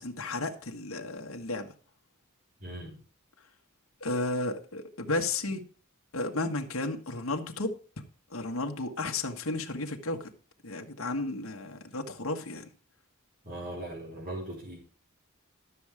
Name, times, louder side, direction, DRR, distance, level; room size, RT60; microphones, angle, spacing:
voice 1, 0.0-1.7 4.0-5.6 6.1-7.8 8.3-10.3 10.6-12.7, left 2 dB, 70° left, 1.6 m, -33 dB
voice 2, 2.6-3.0 13.4-14.8, right 1 dB, 40° right, 4.1 m, -39 dB
13.0 x 7.1 x 5.0 m
head